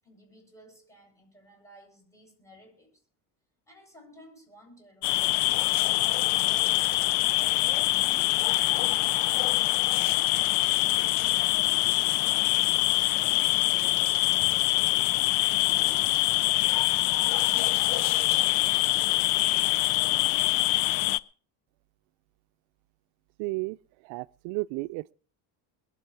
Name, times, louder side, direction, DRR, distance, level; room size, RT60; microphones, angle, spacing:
voice 1, 0.0-3.1 3.7-7.1, equal, 5° left, 8.0 m, -55 dB
sound 1, 5.0-21.2, left 20 dB, 75° left, 0.6 m, -24 dB
voice 2, 23.4-23.8 24.0-25.1, right 24 dB, 75° right, 0.6 m, -33 dB
22.0 x 8.4 x 4.6 m
supercardioid pair, 95°, 47 cm